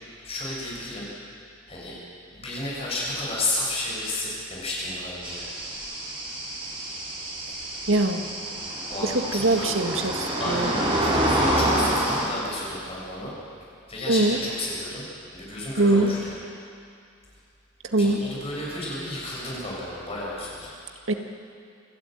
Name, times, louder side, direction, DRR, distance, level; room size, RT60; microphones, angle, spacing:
voice 1, 0.2-1.1 1.7-2.0 2.3-5.4 8.9-9.8 10.4-13.3 13.9-15.0 15.3-16.4 18.0-20.7, left 2 dB, 30° left, -5 dB, 6.7 m, -32 dB
sound 1, 5.2-12.2, right 1 dB, 30° right, 4.3 m, -27 dB
voice 2, 7.9-8.2 9.0-10.7 14.1-14.4 15.8-16.1 17.9-18.2 21.1-21.2, right 2 dB, 75° right, 4 dB, 1.9 m, -22 dB
28.0 x 13.0 x 9.1 m, 2.4 s
head